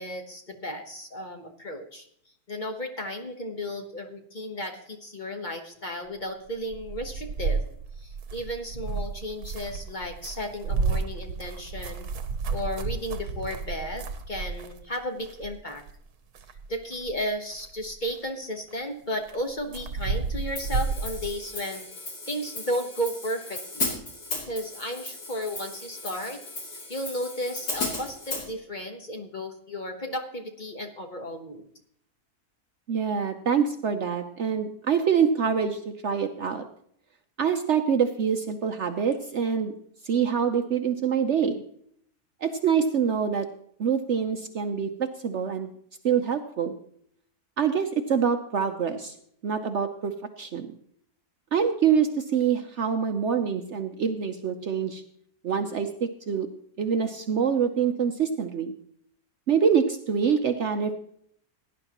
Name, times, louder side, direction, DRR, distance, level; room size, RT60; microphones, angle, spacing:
voice 1, 0.0-2.1 2.5-7.6 8.0-12.1 12.5-15.8 16.7-24.0 24.5-26.4 26.7-31.7, equal, 35° left, 4 dB, 1.1 m, -34 dB
sound 1, 6.6-14.9 15.2-16.0 16.3-17.2 17.5-18.2 18.7-18.8 19.2-21.3, right 4 dB, 75° right, 1.4 m, -32 dB
Hi-hat, 20.6-28.5, left 2 dB, 80° left, 3.4 m, -35 dB
voice 2, 32.9-36.6 37.4-39.7 40.0-41.6 42.4-43.5 43.8-45.7 46.0-46.8 47.6-49.2 49.4-50.1 50.4-50.7 51.5-55.0 55.4-56.5 56.8-58.7 59.5-60.9, right 7 dB, 60° right, 7 dB, 0.9 m, -25 dB
17.5 x 10.5 x 2.9 m, 0.67 s
omnidirectional pair, 1.6 m